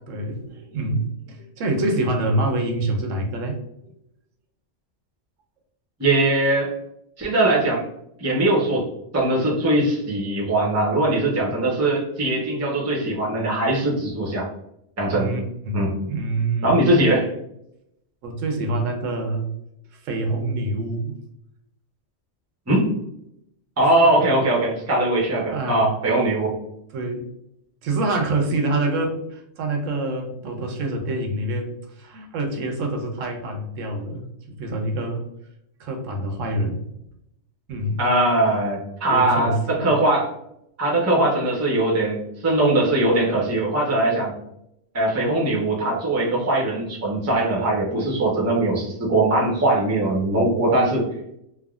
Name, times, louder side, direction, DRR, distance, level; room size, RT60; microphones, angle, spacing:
voice 1, 0.1-3.6 3.8-3.9 11.4-11.5 15.1-16.7 18.2-19.5 19.9-21.2 24.0-24.3 25.5-25.9 26.9-27.3 27.8-35.2 35.8-36.9 37.7-38.0 39.1-39.9, right 2 dB, 85° right, 3 dB, 1.0 m, -26 dB
voice 2, 6.0-6.7 7.2-7.8 8.2-8.9 9.1-14.5 15.0-15.3 15.7-16.0 16.6-17.3 22.7-22.9 23.8-26.6 38.0-40.3 40.8-44.3 44.9-51.1, right 1 dB, 20° right, -3 dB, 0.5 m, -21 dB
3.4 x 2.0 x 2.3 m, 0.80 s
omnidirectional pair, 1.3 m